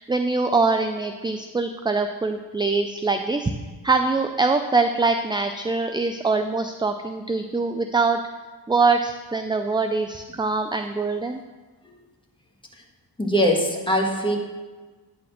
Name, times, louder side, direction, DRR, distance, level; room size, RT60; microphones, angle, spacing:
voice 1, 0.0-3.5 3.8-8.2 8.7-11.4, right 3 dB, 10° right, 7 dB, 0.3 m, -23 dB
voice 2, 13.2-14.4, equal, 10° left, 0 dB, 1.6 m, -21 dB
9.1 x 4.3 x 6.5 m, 1.3 s
cardioid pair, 75°, 43 cm